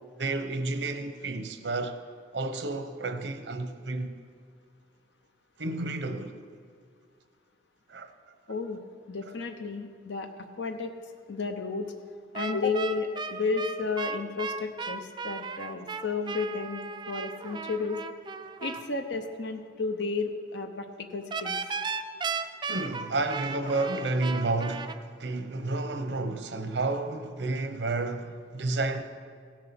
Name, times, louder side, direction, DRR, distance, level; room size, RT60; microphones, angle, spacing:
voice 1, 0.2-2.0 2.3-4.2 5.6-6.3 7.9-8.1 22.7-29.0, right 2 dB, 80° right, 0.9 m, -31 dB
voice 2, 8.5-8.8 9.1-10.9 11.3-11.9 12.3-16.8 17.1-18.0 18.6-21.6, left 4 dB, 75° left, 0.7 m, -32 dB
sound 1, 12.3-18.8 21.3-25.0, right 5 dB, 25° right, 0.4 m, -35 dB
16.0 x 7.4 x 5.9 m
head